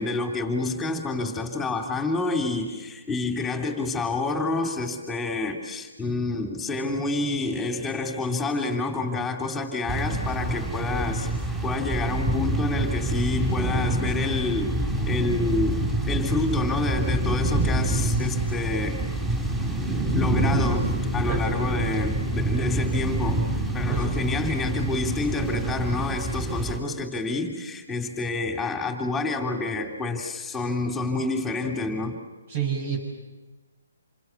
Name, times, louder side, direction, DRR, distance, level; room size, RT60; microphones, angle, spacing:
voice 1, 0.0-11.4 11.6-14.8 15.0-19.0 20.1-23.5 23.7-32.2, left 3 dB, 10° left, 3 dB, 3.2 m, -28 dB
sound 1, 9.9-26.8, right 1 dB, 10° right, 4.7 m, -26 dB
voice 2, 32.5-33.0, right 7 dB, 50° right, -2 dB, 6.2 m, -28 dB
28.5 x 25.0 x 7.1 m, 1.2 s
hypercardioid pair, 145°, 0 cm